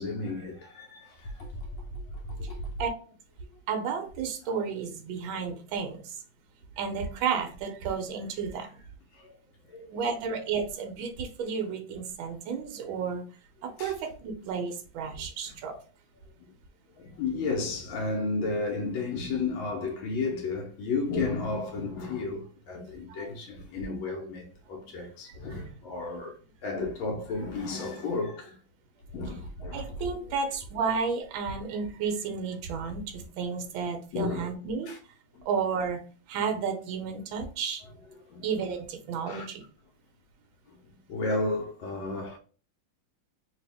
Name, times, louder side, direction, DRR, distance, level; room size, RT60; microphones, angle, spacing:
voice 1, 0.0-1.8 2.2-2.7 4.5-4.6 9.1-9.4 9.7-10.1 13.8-13.9 15.5-15.6 17.0-28.6 29.1-30.0 34.1-34.5 34.9-35.0 35.3-35.5 38.3-38.5 39.2-39.5 41.1-42.4, left 3 dB, 80° left, 1.5 m, -33 dB
voice 2, 3.7-6.2 6.8-8.8 9.9-13.2 13.6-15.8 23.1-23.3 29.7-34.9 35.4-36.0 36.3-37.8 38.4-39.6, right 5 dB, 75° right, 1.4 m, -32 dB
3.4 x 2.8 x 3.3 m
omnidirectional pair, 2.2 m